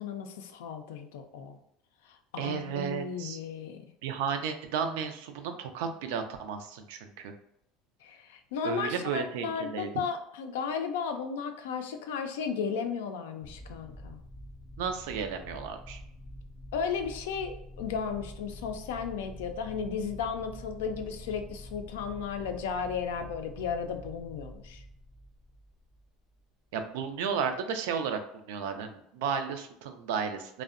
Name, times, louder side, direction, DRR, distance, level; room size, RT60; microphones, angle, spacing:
voice 1, 0.0-1.6 2.1-3.8 8.0-14.2 16.7-24.8, left 6 dB, 85° left, 6 dB, 0.3 m, -34 dB
voice 2, 2.4-3.4 4.0-7.3 8.6-9.9 14.8-16.0 26.7-30.6, right 6 dB, 80° right, 7 dB, 0.3 m, -33 dB
sound 1, 13.4-26.4, equal, 5° left, 0.3 m, -46 dB
2.6 x 2.0 x 2.4 m, 0.73 s
supercardioid pair, 100°, 0 cm